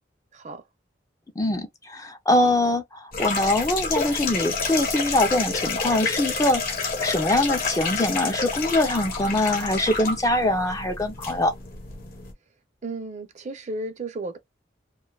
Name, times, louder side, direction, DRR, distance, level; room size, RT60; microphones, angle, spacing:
voice 1, 0.3-0.6 12.8-14.4, right 2 dB, 40° right, 0.5 m, -33 dB
voice 2, 1.4-11.5, left 1 dB, 20° left, 0.4 m, -23 dB
sound 1, 3.1-12.3, left 4 dB, 50° left, 0.9 m, -29 dB
2.5 x 2.3 x 2.2 m
head